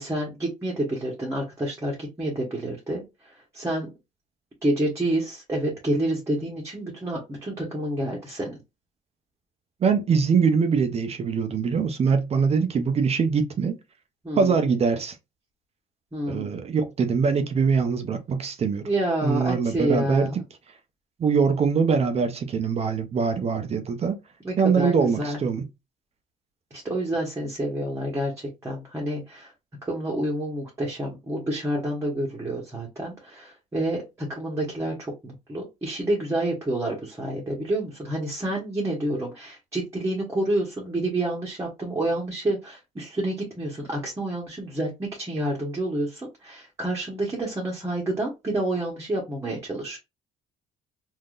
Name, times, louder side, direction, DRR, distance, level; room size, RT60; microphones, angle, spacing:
voice 1, 0.0-3.9 4.6-8.6 14.2-14.5 16.1-16.5 18.8-20.3 24.4-24.9 25.2-25.4 26.7-29.5 29.8-50.0, right 1 dB, 15° right, 1.1 m, -28 dB
voice 2, 9.8-13.8 14.4-15.2 16.3-18.8 19.2-20.3 21.2-24.2 24.6-25.6, right 5 dB, 40° right, 0.6 m, -23 dB
3.6 x 2.7 x 2.4 m
cardioid pair, 110°, 17 cm